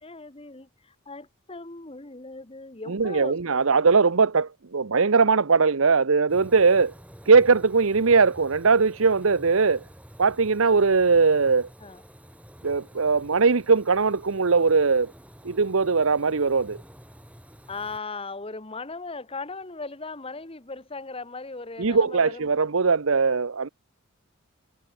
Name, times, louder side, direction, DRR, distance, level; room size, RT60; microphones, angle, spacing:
voice 1, 0.0-3.4 3.8-3.9 11.8-12.0 17.7-22.5, left 3 dB, 25° left, 1.3 m, -38 dB
voice 2, 2.9-6.9 7.3-9.8 10.2-11.7 12.6-15.1 15.4-16.8 21.8-23.7, right 4 dB, 70° right, 0.8 m, -20 dB
sound 1, 6.3-18.0, equal, 5° right, 6.6 m, -49 dB
head